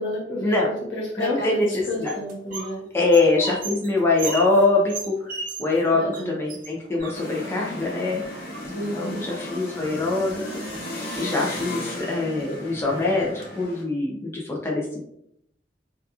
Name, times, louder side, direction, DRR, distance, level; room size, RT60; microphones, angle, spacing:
voice 1, 0.0-2.8 5.9-6.4 8.7-9.3, right 1 dB, 70° left, -3 dB, 1.0 m, -30 dB
voice 2, 1.2-2.1 2.9-5.3 5.6-8.2 8.6-10.4 11.2-15.0, left 3 dB, 15° left, -3 dB, 0.3 m, -23 dB
sound 1, 1.6-2.8 3.0-5.8 6.1-6.2 6.5-7.6 8.3-9.0 10.1-10.2 10.5-11.0 11.5-11.7 12.1-12.2 12.7-13.5, right 4 dB, 45° right, 0.5 m, -36 dB
sound 2, 7.0-13.7, equal, 15° right, 1.2 m, -43 dB
sound 3, 7.1-13.8, left 1 dB, 55° left, 0.6 m, -36 dB
2.7 x 2.3 x 2.3 m, 0.75 s
head